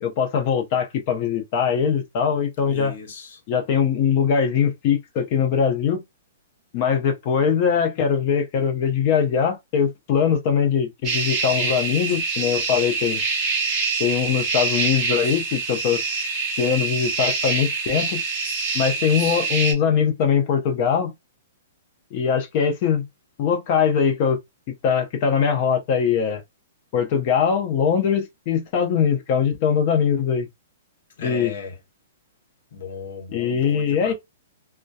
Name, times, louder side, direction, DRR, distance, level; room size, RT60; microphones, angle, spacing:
voice 1, 0.0-2.9 3.5-6.0 6.7-13.2 14.0-16.0 16.6-18.2 18.7-21.1 22.1-23.1 23.4-24.4 24.8-26.4 26.9-30.5 31.2-31.5 33.3-34.1, left 7 dB, 35° left, 0.6 m, -21 dB
voice 2, 2.7-3.4 31.2-31.8 32.7-34.1, left 5 dB, 55° left, 1.0 m, -36 dB
sound 1, 11.0-19.7, right 4 dB, 15° right, 1.0 m, -25 dB
2.7 x 2.2 x 2.3 m
hypercardioid pair, 170°, 0 cm